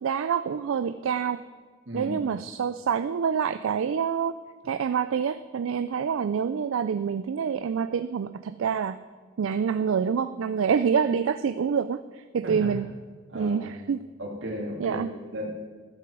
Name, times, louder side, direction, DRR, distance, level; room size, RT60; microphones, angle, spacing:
voice 1, 0.0-1.5 1.9-4.3 4.6-9.0 9.4-12.9 13.3-14.0 14.8-15.1, right 7 dB, 80° right, 12 dB, 0.4 m, -27 dB
voice 2, 12.4-12.7 13.3-13.6 14.2-15.0 15.3-15.5, equal, 65° right, 0 dB, 2.3 m, -34 dB
12.5 x 7.9 x 6.1 m, 1.4 s
head